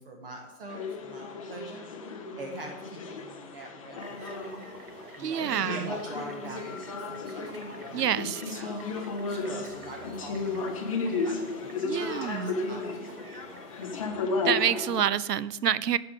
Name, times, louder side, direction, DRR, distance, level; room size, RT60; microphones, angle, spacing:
voice 1, 0.0-4.6 5.2-8.8 9.3-13.4, right 2 dB, 40° right, 2 dB, 1.2 m, -44 dB
sound 1, 0.7-15.0, left 4 dB, 25° left, 0.6 m, -34 dB
sound 2, 4.0-14.1, right 4 dB, 65° right, 1.3 m, -50 dB
voice 2, 5.2-5.9 7.9-8.6 11.8-12.6 14.4-16.0, right 9 dB, 85° right, 18 dB, 0.6 m, -27 dB
12.0 x 4.8 x 5.1 m, 1.0 s
hypercardioid pair, 145°, 46 cm